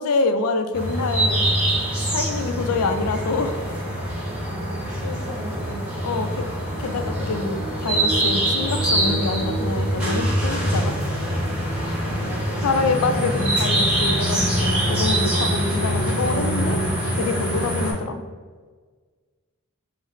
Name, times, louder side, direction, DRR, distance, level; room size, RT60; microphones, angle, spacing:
voice 1, 0.0-1.4 2.1-3.6 6.0-6.3 6.8-10.9 12.6-16.8 17.1-18.0, left 3 dB, 85° left, 8 dB, 0.4 m, -26 dB
sound 1, 0.7-17.9, right 1 dB, 5° right, 1.1 m, -24 dB
voice 2, 4.4-6.5 11.9-12.7 15.6-16.1 17.8-18.2, equal, 60° right, -1 dB, 1.0 m, -38 dB
4.9 x 2.0 x 3.8 m, 1.5 s
head